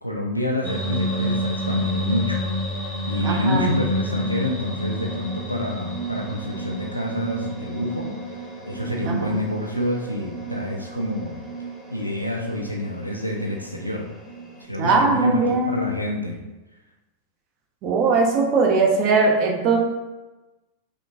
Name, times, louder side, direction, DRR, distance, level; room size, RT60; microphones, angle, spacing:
voice 1, 0.0-2.4 3.0-8.1 8.7-11.4 11.9-14.0 14.6-16.4, left 1 dB, 90° right, 0 dB, 0.5 m, -28 dB
sound 1, 0.6-14.6, equal, ahead, 1.1 m, -30 dB
voice 2, 3.2-3.7 9.1-9.3 14.8-15.8 17.8-19.8, right 4 dB, 35° right, 0 dB, 1.0 m, -20 dB
5.5 x 2.2 x 4.1 m, 1.1 s
figure-of-eight pair, 90°, 0 cm